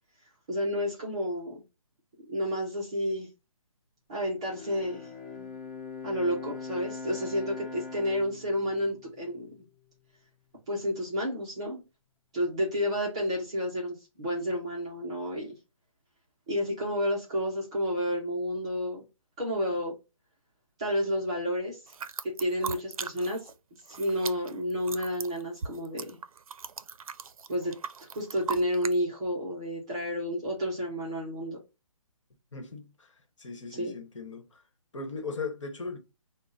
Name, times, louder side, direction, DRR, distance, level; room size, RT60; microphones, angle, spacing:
voice 1, 0.5-1.6 2.3-3.3 4.1-5.1 6.0-9.7 10.7-11.8 12.3-15.6 16.5-19.0 19.4-20.0 20.8-21.8 22.2-23.5 23.9-26.2 27.5-27.7 28.1-31.6 33.7-33.9, equal, 10° right, 0.5 m, -30 dB
Bowed string instrument, 4.4-9.9, left 5 dB, 35° left, 1.2 m, -42 dB
sound 1, 21.9-23.5 23.8-29.0, right 6 dB, 85° right, 0.5 m, -39 dB
voice 2, 32.5-33.1 33.4-34.6 34.9-36.0, left 4 dB, 60° left, 1.2 m, -38 dB
3.8 x 2.1 x 3.9 m
hypercardioid pair, 175°, 18 cm